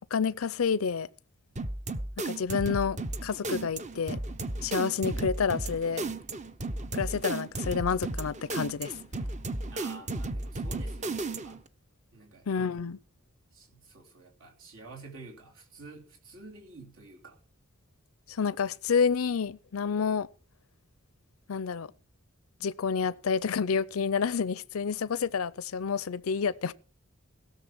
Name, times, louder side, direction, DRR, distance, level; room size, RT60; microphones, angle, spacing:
voice 1, 0.1-1.1 2.2-4.2 4.6-6.1 6.9-9.0 12.5-13.0 18.3-20.3 21.5-21.9 22.6-26.7, left 6 dB, 90° left, 0.5 m, -29 dB
sound 1, 1.6-11.7, right 2 dB, 35° right, 0.8 m, -34 dB
voice 2, 9.7-11.6 12.1-12.5 13.5-17.4, right 3 dB, 70° right, 3.2 m, -49 dB
16.5 x 6.8 x 6.0 m
head